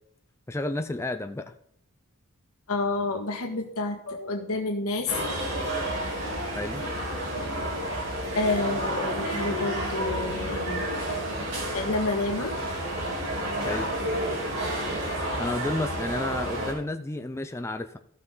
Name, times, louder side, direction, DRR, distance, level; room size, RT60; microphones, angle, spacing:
voice 1, 0.5-1.5 6.5-6.8 13.6-13.9 15.4-18.0, left 1 dB, 10° left, 7 dB, 0.4 m, -31 dB
voice 2, 2.7-5.1 8.3-10.9 11.7-12.6, left 2 dB, 90° left, 4 dB, 1.6 m, -29 dB
sound 1, 5.1-16.7, right 1 dB, 65° right, 3.2 m, -30 dB
15.0 x 5.9 x 3.9 m, 0.67 s
head